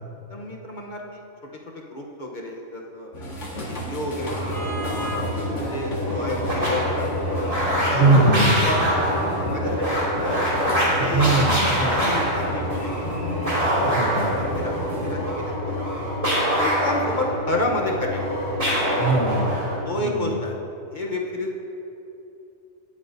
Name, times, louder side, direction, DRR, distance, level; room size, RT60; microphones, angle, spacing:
voice 1, 0.3-1.2 1.7-3.1 3.6-4.6 4.8-7.3 7.8-10.5 11.0-11.5 11.9-13.3 13.7-16.0 16.5-18.4 19.8-20.6 20.9-21.6, left 1 dB, 40° left, -1 dB, 1.1 m, -31 dB
sound 1, 3.1-15.2, left 1 dB, 65° left, 2.0 m, -32 dB
sound 2, 4.1-19.8, equal, 25° right, 2.7 m, -25 dB
voice 2, 7.9-8.7 11.0-12.2 13.8-14.4 19.0-19.7 20.0-20.4, right 3 dB, 70° right, 3 dB, 1.2 m, -22 dB
18.5 x 8.5 x 2.7 m, 2.8 s
omnidirectional pair, 1.3 m